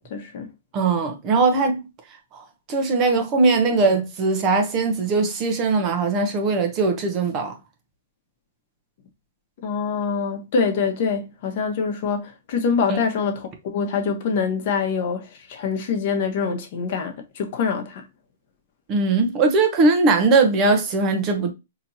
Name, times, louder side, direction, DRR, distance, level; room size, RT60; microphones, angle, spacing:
voice 1, 0.1-0.5 9.6-18.1, left 5 dB, 50° left, 1.0 m, -25 dB
voice 2, 0.7-1.8 2.3-7.6 12.9-13.0 18.9-21.5, right 3 dB, 30° right, 0.8 m, -20 dB
4.3 x 2.9 x 2.7 m
hypercardioid pair, 155°, 0 cm